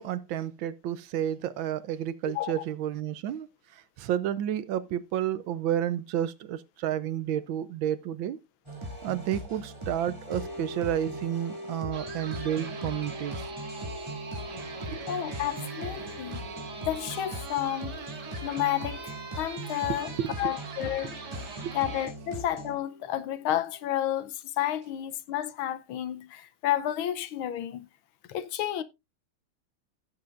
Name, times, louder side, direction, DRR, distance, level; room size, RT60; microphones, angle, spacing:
voice 1, 0.0-3.5 4.0-8.4 9.0-13.5 14.9-15.0 19.9-20.5 21.0-21.1 21.6-21.7, right 11 dB, 75° right, 1.4 m, -31 dB
sound 1, 8.6-22.8, right 1 dB, 15° right, 2.5 m, -40 dB
sound 2, 10.3-24.2, left 1 dB, 10° left, 1.2 m, -45 dB
sound 3, 11.9-22.1, right 5 dB, 55° right, 2.2 m, -43 dB
voice 2, 15.1-16.4 16.8-18.0 18.4-21.2 21.7-27.9 28.3-28.8, left 12 dB, 80° left, 1.6 m, -31 dB
16.0 x 7.3 x 2.5 m
omnidirectional pair, 2.3 m